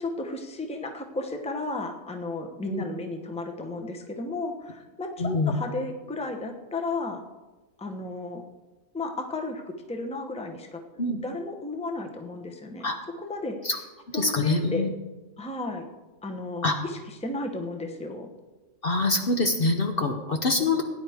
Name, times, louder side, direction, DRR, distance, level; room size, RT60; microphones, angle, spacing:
voice 1, 0.0-7.2 7.8-8.4 8.9-12.9 13.2-13.6 14.1-14.9 15.4-15.9 16.2-18.3, left 2 dB, 5° left, 3 dB, 0.9 m, -34 dB
voice 2, 5.2-5.5 11.0-11.2 12.8-13.0 13.6-13.8 14.2-14.9 16.6-16.8 18.8-20.8, left 2 dB, 45° left, 4 dB, 1.0 m, -25 dB
17.5 x 10.0 x 3.6 m, 1.2 s
omnidirectional pair, 1.4 m